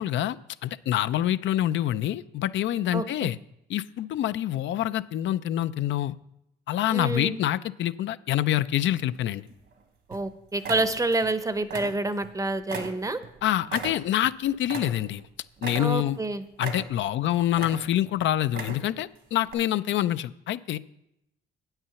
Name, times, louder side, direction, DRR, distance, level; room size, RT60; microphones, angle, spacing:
voice 1, 0.0-3.4 3.7-6.2 6.7-9.4 13.4-15.2 15.6-16.2 16.6-20.8, left 12 dB, 70° left, 14 dB, 0.4 m, -26 dB
voice 2, 2.9-3.3 6.9-7.4 10.1-13.2 15.8-16.4, right 2 dB, 15° right, 12 dB, 0.7 m, -28 dB
sound 1, 9.1-9.7 10.1-10.3 10.6-11.3 11.6-12.3 12.7-15.3 15.6-16.2 16.6-17.1 17.5-18.1 18.4-19.0 19.5-19.6, right 4 dB, 60° right, 1.5 m, -37 dB
9.0 x 5.6 x 6.9 m, 0.82 s
cardioid pair, 90°, 20 cm